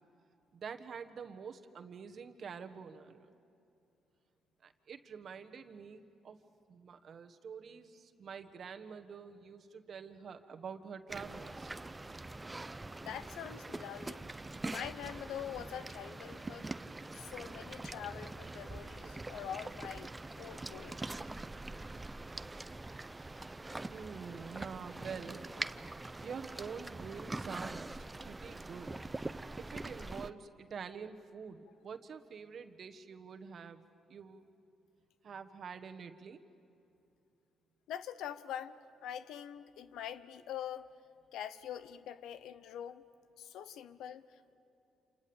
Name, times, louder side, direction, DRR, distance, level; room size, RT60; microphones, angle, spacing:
voice 1, 0.5-3.3 4.6-6.4 6.7-11.7 23.8-25.5 26.2-29.0 29.6-34.5 35.2-36.4, right 6 dB, 55° right, 1.4 m, -47 dB
sound 1, 11.1-30.3, right 2 dB, 15° right, 0.7 m, -44 dB
voice 2, 13.0-16.8 17.1-21.0 37.9-40.9 41.3-43.0 43.4-44.6, left 10 dB, 85° left, 0.9 m, -44 dB
29.0 x 28.0 x 7.2 m
cardioid pair, 90°, 0 cm